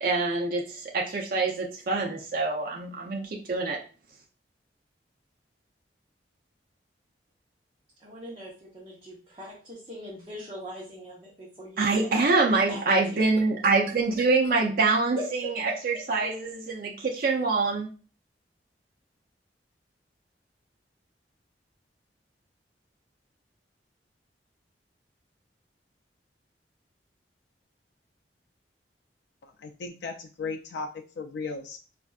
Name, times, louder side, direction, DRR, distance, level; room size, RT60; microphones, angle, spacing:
voice 1, 0.0-3.8 11.8-15.5 15.8-17.9, right 3 dB, 55° right, -1 dB, 0.5 m, -25 dB
voice 2, 8.0-12.1 12.7-13.3 15.2-15.3 15.6-15.7, equal, 30° right, -6 dB, 0.8 m, -40 dB
voice 3, 29.4-30.9 31.2-31.8, left 4 dB, 80° left, 3 dB, 0.3 m, -36 dB
4.2 x 2.5 x 2.3 m, 0.38 s
head